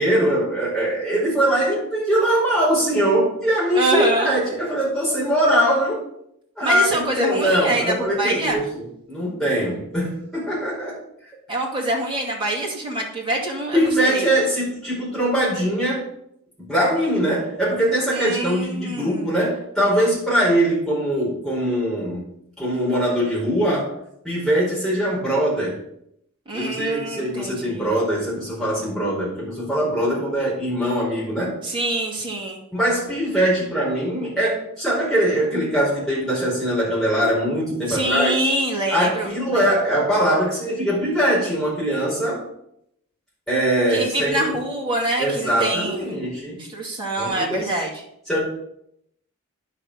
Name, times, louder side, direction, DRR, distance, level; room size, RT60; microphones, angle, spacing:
voice 1, 0.0-6.0 6.6-11.0 13.7-16.0 16.6-22.2 22.6-23.9 24.2-25.8 26.5-31.6 32.7-38.3 38.9-42.4 43.5-44.5 45.2-46.6 47.2-47.7 48.3-48.4, right 1 dB, ahead, -7 dB, 5.0 m, -22 dB
voice 2, 3.7-4.3 6.6-8.6 11.5-14.2 18.1-19.3 26.5-27.9 31.6-32.6 37.9-39.7 43.9-46.2 46.6-48.0, right 1 dB, 20° right, -3 dB, 2.4 m, -25 dB
9.9 x 5.9 x 6.5 m, 0.75 s
head